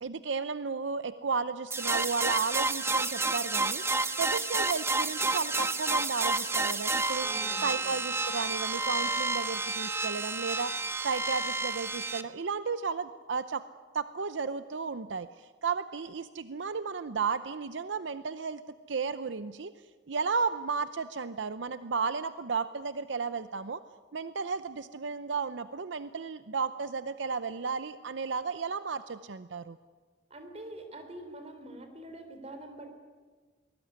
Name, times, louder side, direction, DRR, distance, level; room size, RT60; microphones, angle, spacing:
voice 1, 0.0-7.3 7.6-10.7 11.0-13.6 13.9-18.6 18.9-19.7 20.1-23.8 24.1-29.8, right 5 dB, 80° right, 12 dB, 0.7 m, -33 dB
sound 1, 1.7-12.2, right 3 dB, 15° right, 0.9 m, -30 dB
voice 2, 7.2-7.8 30.3-33.0, right 1 dB, 35° right, 7 dB, 3.8 m, -45 dB
24.0 x 20.0 x 9.6 m, 1.5 s
head